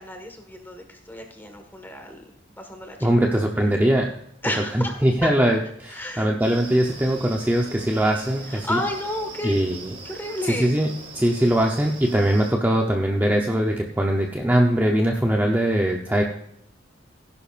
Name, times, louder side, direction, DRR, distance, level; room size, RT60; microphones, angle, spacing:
voice 1, 0.0-3.4 4.4-5.3 5.9-6.5 8.5-9.5 10.0-10.7, left 1 dB, 10° left, 3 dB, 1.6 m, -32 dB
voice 2, 3.0-4.1 4.7-8.8 9.4-9.9 10.6-10.9 11.1-16.2, right 1 dB, 10° right, 1 dB, 0.8 m, -21 dB
sound 1, 6.4-12.5, right 3 dB, 35° right, 3.1 m, -41 dB
16.0 x 10.5 x 2.5 m, 0.75 s
head